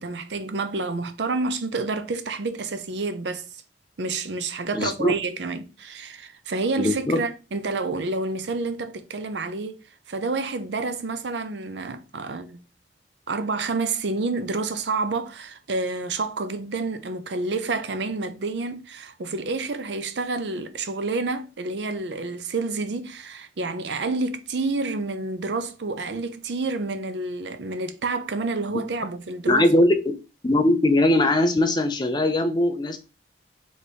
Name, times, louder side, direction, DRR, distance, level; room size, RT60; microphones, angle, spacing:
voice 1, 0.0-3.5 4.0-9.8 10.1-12.6 13.3-29.8, right 3 dB, 80° right, 0.6 m, -29 dB
voice 2, 4.7-5.1 6.8-7.2 28.7-28.8 29.5-30.1 30.4-33.0, left 1 dB, 25° left, 0.6 m, -20 dB
3.4 x 3.3 x 4.2 m
head